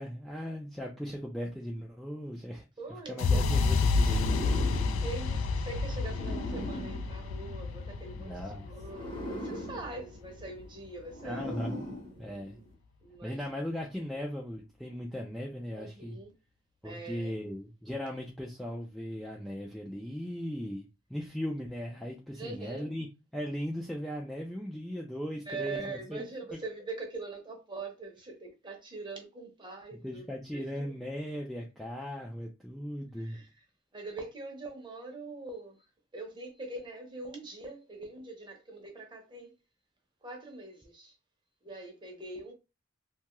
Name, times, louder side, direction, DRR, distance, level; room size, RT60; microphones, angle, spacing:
voice 1, 0.0-2.7 3.1-4.6 8.2-8.7 11.2-11.9 12.2-12.6 13.2-16.2 16.8-20.8 21.1-23.1 23.3-26.2 30.0-33.4, equal, ahead, 0.3 m, -38 dB
voice 2, 2.8-3.6 5.0-11.8 13.0-13.4 15.7-16.3 16.8-17.4 22.4-22.9 25.5-30.3 30.5-30.9 33.2-33.5 33.9-35.8 36.1-39.5 40.2-41.1 41.6-42.5, right 3 dB, 25° right, 0.7 m, -43 dB
sound 1, 3.2-11.1, left 4 dB, 80° left, 0.3 m, -30 dB
sound 2, 3.9-8.1 8.8-12.7, equal, 25° left, 0.7 m, -41 dB
2.7 x 2.3 x 3.0 m
head